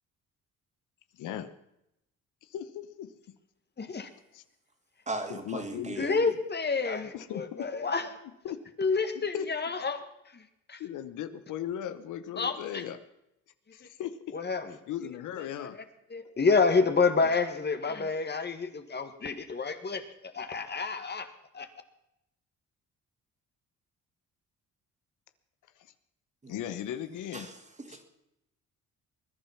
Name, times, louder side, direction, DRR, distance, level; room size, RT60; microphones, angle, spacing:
voice 1, 1.1-1.5 2.4-3.1 4.3-4.4 5.3-6.3 7.1-7.7 8.4-8.6 9.3-9.5 10.8-13.0 13.7-14.4 14.7-15.8 17.2-17.3 26.5-27.5 27.9-28.0, left 10 dB, 85° left, 11 dB, 1.0 m, -37 dB
voice 2, 3.8-4.1 6.0-8.1 8.8-10.0 10.3-10.4 10.7-10.8 12.4-12.8 14.3-14.7 15.4-15.5 16.1-20.0 20.3-21.3 21.5-21.7, left 4 dB, 35° left, 8 dB, 1.7 m, -28 dB
voice 3, 5.1-6.2 26.4-26.5 27.3-28.0, right 2 dB, 25° right, 6 dB, 2.6 m, -38 dB
20.5 x 10.5 x 5.9 m, 0.83 s
cardioid pair, 90°, 30 cm